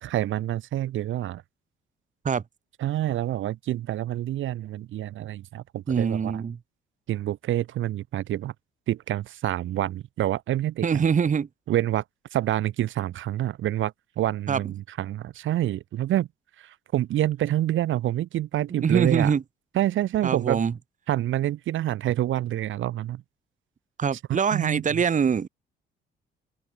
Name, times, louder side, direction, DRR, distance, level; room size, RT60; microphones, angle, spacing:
voice 1, 0.0-1.4 2.8-6.4 7.1-8.5 8.9-11.0 11.7-12.0 12.3-16.3 16.6-19.3 19.7-20.6 21.1-23.2 24.3-25.0, right 13 dB, 75° right, 1.9 m, -27 dB
voice 2, 5.9-6.6 10.8-11.5 14.5-14.6 18.7-19.4 20.2-20.7 24.0-25.5, right 6 dB, 40° right, 1.6 m, -23 dB
open air
cardioid pair, 90°, 20 cm